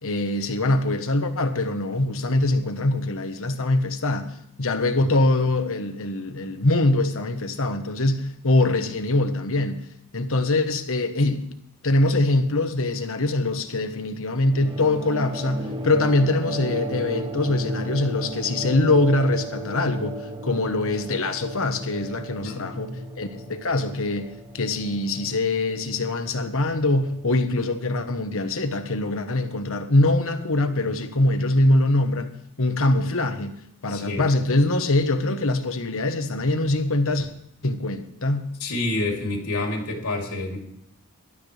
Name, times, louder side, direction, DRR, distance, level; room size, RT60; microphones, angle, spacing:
voice 1, 0.0-4.3 4.6-9.8 10.1-11.4 11.8-24.3 24.5-33.5 33.8-37.3 37.6-38.5, left 2 dB, 65° left, 7 dB, 1.3 m, -23 dB
sound 1, 14.4-29.3, right 1 dB, 25° right, 1.2 m, -35 dB
voice 2, 22.3-22.7 33.9-34.2 38.6-40.6, left 2 dB, 85° left, 0 dB, 3.1 m, -28 dB
19.0 x 12.5 x 3.4 m, 0.73 s
head